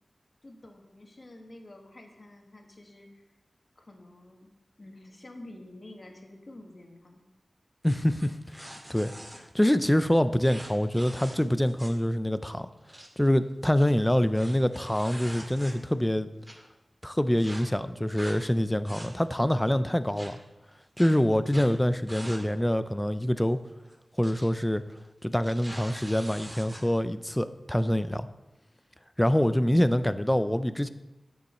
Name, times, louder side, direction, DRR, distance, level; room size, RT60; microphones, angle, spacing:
voice 1, 0.4-3.2 3.7-4.5 4.8-7.2 29.4-29.7, left 1 dB, 50° left, 2 dB, 1.5 m, -49 dB
voice 2, 7.8-9.1 9.5-12.7 13.2-16.3 17.0-20.4 21.0-23.6 24.2-24.8 25.2-28.3 29.2-30.9, equal, 10° left, 12 dB, 0.5 m, -25 dB
sound 1, 7.8-9.4 10.4-12.0 12.3-12.4 12.7-13.1 13.6-16.0 16.4-16.5 17.4-17.6 18.1-18.4 18.7-19.4 20.2-20.3 21.0-21.1 21.5-21.7 22.1-22.4 22.7-22.8 23.9-24.4 24.7-24.9 25.3-26.8, equal, 15° right, 2.1 m, -44 dB
9.5 x 7.0 x 4.3 m, 1.1 s
wide cardioid pair, 55°, 0 cm